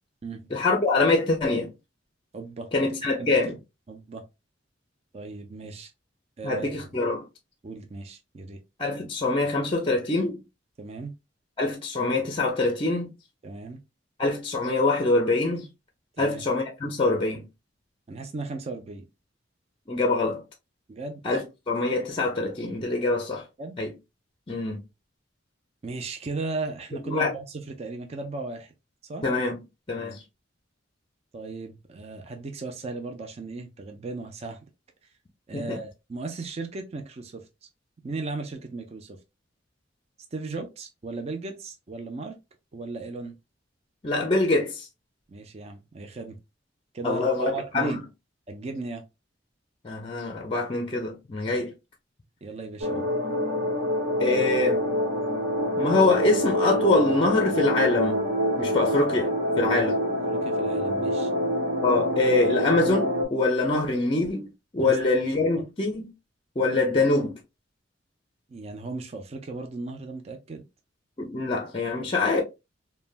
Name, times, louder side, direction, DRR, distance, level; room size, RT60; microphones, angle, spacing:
voice 1, 0.5-1.7 2.7-3.6 6.4-7.2 8.8-10.4 11.6-13.1 14.2-15.7 16.2-17.4 19.9-20.4 21.2-23.4 23.8-23.9 24.5-24.8 27.1-27.3 29.2-29.6 29.9-30.2 35.5-35.8 44.0-44.9 47.0-48.0 49.8-51.7 54.2-54.8 55.8-58.2 58.6-60.0 61.8-66.1 66.6-67.3 71.2-72.4, left 2 dB, 30° left, 0.5 m, -24 dB
voice 2, 2.3-2.7 3.2-3.3 3.9-4.2 5.1-5.9 6.4-6.7 7.6-8.6 10.8-11.1 13.4-13.8 16.2-16.4 18.1-19.0 20.9-21.2 23.6-23.7 25.8-28.7 29.0-29.3 29.9-30.1 31.3-34.6 35.5-37.4 38.0-39.2 40.3-42.4 42.7-43.4 45.3-46.4 46.9-48.0 48.5-49.1 51.5-51.6 52.4-53.1 59.6-59.8 60.3-61.3 64.8-65.0 65.6-65.7 68.5-70.6, right 3 dB, 35° right, 0.4 m, -36 dB
sound 1, 52.8-63.3, equal, 55° right, 1.2 m, -26 dB
3.2 x 2.2 x 2.4 m
head